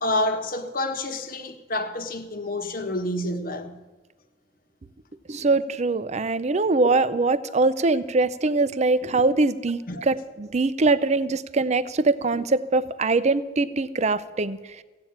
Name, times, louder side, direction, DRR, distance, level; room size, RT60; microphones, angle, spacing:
voice 1, 0.0-3.8 9.9-10.0 10.9-11.0, left 1 dB, 50° left, 1.1 m, -28 dB
voice 2, 5.3-14.6, right 3 dB, 40° right, 0.6 m, -22 dB
15.5 x 8.6 x 8.6 m
head